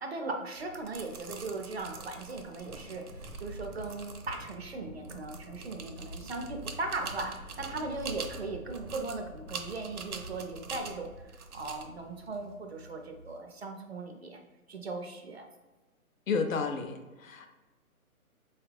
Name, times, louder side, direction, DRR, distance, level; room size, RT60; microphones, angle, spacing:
voice 1, 0.0-7.3 7.6-11.1 11.5-14.4 14.7-15.4, right 3 dB, 45° right, 3 dB, 0.5 m, -38 dB
sound 1, 0.6-13.3, right 5 dB, 80° right, 0.8 m, -45 dB
Thunder, 2.5-12.8, equal, 25° left, 0.8 m, -48 dB
voice 2, 16.3-17.5, left 5 dB, 65° left, 6 dB, 0.6 m, -31 dB
4.2 x 2.4 x 3.2 m, 1.2 s
hypercardioid pair, 170°, 44 cm